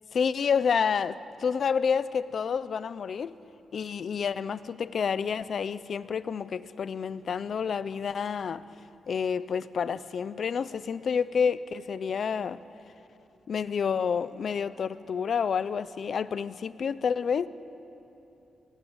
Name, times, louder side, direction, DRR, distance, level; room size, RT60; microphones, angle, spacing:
voice 1, 0.1-3.3 3.7-8.6 9.1-12.6 13.5-17.5, left 6 dB, 50° left, 0.7 m, -29 dB
28.5 x 24.0 x 8.1 m
wide cardioid pair, 170°, 0 cm